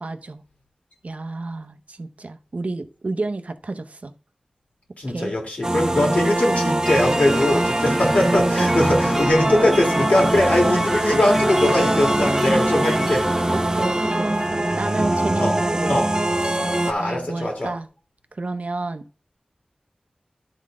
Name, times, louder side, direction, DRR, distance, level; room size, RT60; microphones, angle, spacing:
voice 1, 0.0-0.4 1.0-4.1 5.1-5.3 8.5-8.9 10.6-10.9 13.5-16.1 16.4-17.9 18.3-19.0, right 3 dB, 70° right, 0.7 m, -30 dB
voice 2, 5.0-13.3 15.4-15.5 15.9-16.1 16.8-17.7, left 1 dB, 75° left, 1.9 m, -21 dB
sound 1, 5.6-16.9, right 1 dB, 30° right, 0.7 m, -23 dB
sound 2, 6.8-15.4, equal, 5° left, 1.0 m, -28 dB
11.0 x 3.9 x 3.7 m
wide cardioid pair, 45°, 2 cm